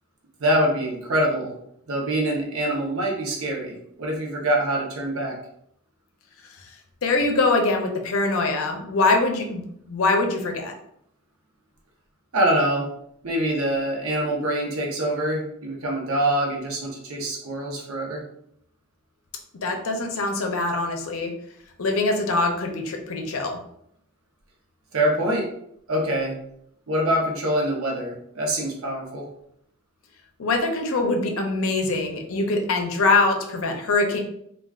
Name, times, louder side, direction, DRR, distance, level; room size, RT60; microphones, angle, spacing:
voice 1, 0.4-1.5 1.9-5.3 12.3-12.9 13.2-18.2 24.9-25.5 25.9-26.4 26.9-29.3, right 1 dB, 70° right, -1 dB, 0.7 m, -24 dB
voice 2, 7.0-9.6 9.9-10.7 19.6-21.3 21.8-23.6 30.4-34.2, left 3 dB, 70° left, 3 dB, 0.5 m, -23 dB
3.4 x 2.3 x 2.3 m, 0.71 s
head